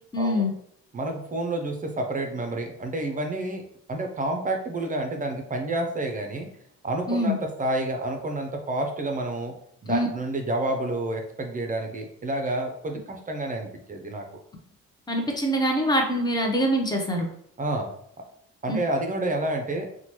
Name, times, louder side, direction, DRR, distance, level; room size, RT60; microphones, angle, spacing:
voice 1, 0.1-0.5 7.1-7.4 9.9-10.1 15.1-17.3 18.7-18.8, equal, 15° left, 1 dB, 0.7 m, -24 dB
voice 2, 0.9-3.6 3.9-6.5 6.8-9.5 9.8-14.2 17.6-17.9 18.6-19.9, right 1 dB, 25° right, 3 dB, 0.5 m, -29 dB
3.0 x 2.2 x 2.9 m, 0.67 s
cardioid pair, 90°, 30 cm